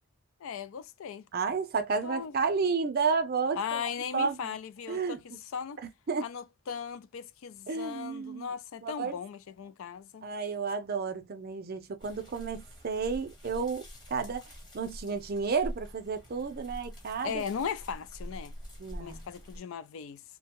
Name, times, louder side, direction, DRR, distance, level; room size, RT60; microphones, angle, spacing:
voice 1, 0.4-1.2 2.0-2.3 3.5-5.8 6.2-10.3 17.2-18.5 19.0-20.2, left 7 dB, 70° left, 0.4 m, -38 dB
voice 2, 1.3-3.8 4.1-4.5 4.9-5.4 6.1-6.2 7.7-8.5 8.8-9.1 10.2-14.4 14.7-17.4 18.8-19.2, right 5 dB, 45° right, 0.5 m, -31 dB
sound 1, 12.0-19.6, equal, 20° left, 1.0 m, -45 dB
2.7 x 2.2 x 2.9 m
head